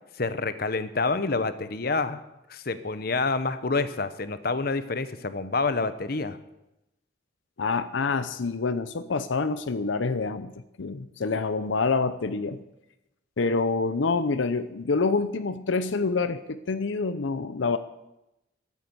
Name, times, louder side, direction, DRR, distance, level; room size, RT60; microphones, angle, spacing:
voice 1, 0.2-2.2 2.5-6.4, left 3 dB, 50° left, 12 dB, 0.9 m, -28 dB
voice 2, 7.6-10.5 10.8-12.6 13.4-17.8, left 4 dB, 80° left, 12 dB, 0.7 m, -27 dB
13.0 x 9.3 x 8.1 m, 0.91 s
head